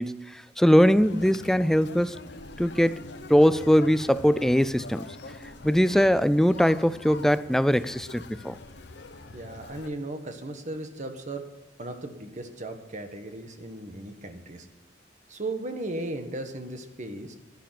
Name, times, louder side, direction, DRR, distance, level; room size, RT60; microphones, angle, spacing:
voice 1, 0.0-2.2 2.6-5.1 5.6-8.6, equal, ahead, 0.3 m, -21 dB
Conversation, 0.8-9.9, left 3 dB, 65° left, 0.9 m, -44 dB
voice 2, 9.3-11.4 11.8-14.7 15.3-17.3, right 2 dB, 45° right, 1.5 m, -36 dB
11.5 x 11.5 x 5.9 m
head